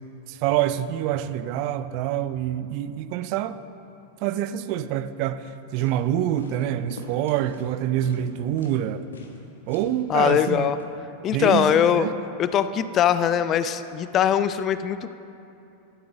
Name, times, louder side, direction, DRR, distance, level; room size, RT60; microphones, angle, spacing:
voice 1, 0.3-3.6 4.2-9.1 9.7-10.7 11.3-12.1, right 11 dB, 45° right, 13 dB, 0.4 m, -26 dB
sound 1, 5.5-5.6 5.8-6.0 6.4-6.6 6.9-7.7 8.0-8.3 8.6-8.8 9.1-9.4 9.7-9.9 10.2-10.5 10.8-10.9, left 4 dB, 70° left, 1.0 m, -42 dB
voice 2, 10.1-10.8 11.2-12.1 12.4-15.1, left 9 dB, 30° left, 13 dB, 0.3 m, -21 dB
12.0 x 7.6 x 3.9 m, 2.8 s
figure-of-eight pair, 90°, 0 cm